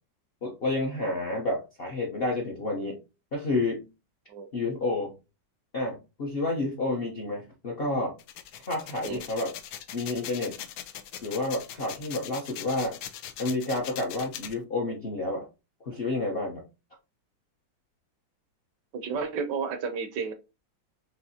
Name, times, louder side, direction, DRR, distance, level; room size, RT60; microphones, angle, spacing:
voice 1, 0.4-3.0 3.3-3.9 4.5-5.1 5.7-8.1 8.7-9.5 9.9-10.6 11.2-13.0 13.4-15.5 15.8-16.6, left 2 dB, 50° left, 0 dB, 0.7 m, -30 dB
sound 1, 8.2-14.5, left 11 dB, 80° left, 1.4 m, -41 dB
voice 2, 18.9-20.3, right 5 dB, 70° right, 8 dB, 1.1 m, -32 dB
5.9 x 2.7 x 2.7 m, 0.28 s
omnidirectional pair, 2.1 m